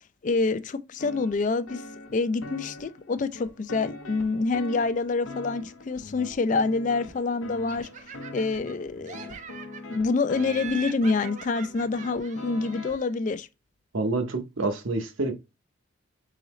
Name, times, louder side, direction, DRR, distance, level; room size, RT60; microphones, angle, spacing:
voice 1, 0.2-1.8 2.1-7.9 8.3-9.3 9.9-13.5, left 3 dB, 40° left, 0.3 m, -27 dB
sound 1, 1.0-13.0, left 2 dB, 80° left, 0.7 m, -43 dB
Laughter, 7.7-8.7 9.0-10.0 10.3-13.1, right 7 dB, 35° right, 0.4 m, -43 dB
voice 2, 13.9-15.3, right 2 dB, 75° right, 0.9 m, -27 dB
3.9 x 3.8 x 3.1 m
head